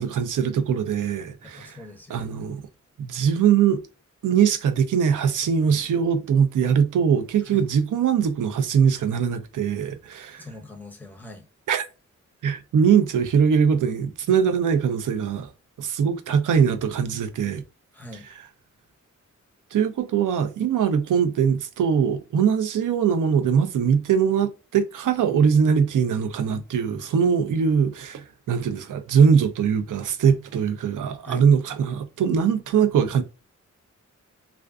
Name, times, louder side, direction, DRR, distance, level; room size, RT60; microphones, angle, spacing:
voice 1, 0.0-1.8 2.1-2.7 3.0-3.8 4.2-10.5 11.7-11.9 12.4-15.5 15.8-17.6 19.7-33.2, right 7 dB, 90° right, 0.5 m, -22 dB
voice 2, 1.4-2.3 7.5-7.6 10.4-11.5 17.9-18.3 31.2-31.5, left 2 dB, 5° left, 0.6 m, -42 dB
2.4 x 2.4 x 2.2 m
wide cardioid pair, 150°, 30 cm